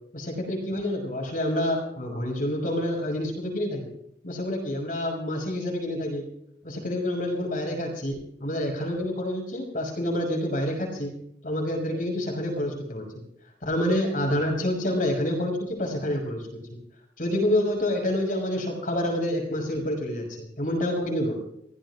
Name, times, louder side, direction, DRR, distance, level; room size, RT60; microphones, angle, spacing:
voice 1, 0.1-3.9 4.2-6.3 6.6-11.2 11.4-13.1 13.6-16.8 17.2-21.4, left 1 dB, 50° left, 1 dB, 5.8 m, -28 dB
30.0 x 15.5 x 2.5 m, 0.73 s
head